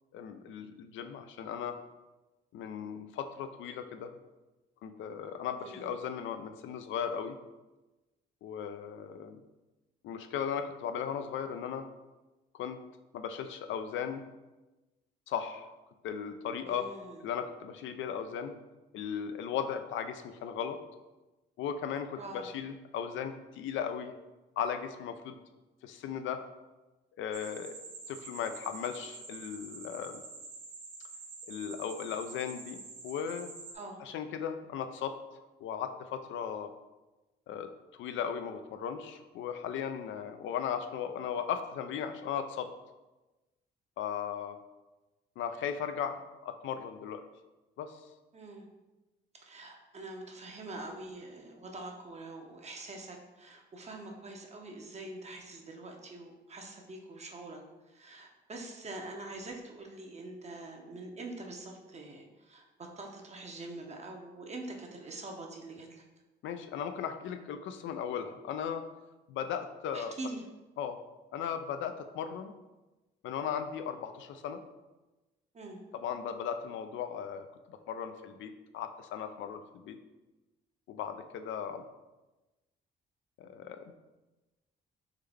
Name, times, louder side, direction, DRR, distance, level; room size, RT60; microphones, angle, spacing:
voice 1, 0.1-1.8 2.5-4.1 4.8-7.4 8.4-9.4 10.0-11.8 12.6-12.8 13.1-14.2 15.3-15.7 16.0-16.9 17.2-18.6 18.9-20.8 21.6-24.1 24.6-25.4 25.8-26.4 27.2-27.8 28.1-30.2 31.5-33.5 34.0-35.1 35.6-36.7 37.5-42.7 44.0-44.6 45.4-47.2 47.8-47.9 66.4-68.8 69.3-70.1 70.8-71.0 71.3-72.5 73.2-74.6 75.9-80.0 80.9-81.8 83.4-83.9, left 8 dB, 75° left, 7 dB, 0.4 m, -37 dB
voice 2, 5.6-5.9 16.6-17.2 22.2-22.5 33.7-34.0 48.3-48.6 49.3-57.6 57.9-66.0 69.9-70.4 75.5-75.8, right 2 dB, 35° right, 1 dB, 0.7 m, -44 dB
sound 1, 27.3-33.7, right 4 dB, 90° right, 0.9 m, -47 dB
3.7 x 3.2 x 3.4 m, 1.1 s
cardioid pair, 90°, 20 cm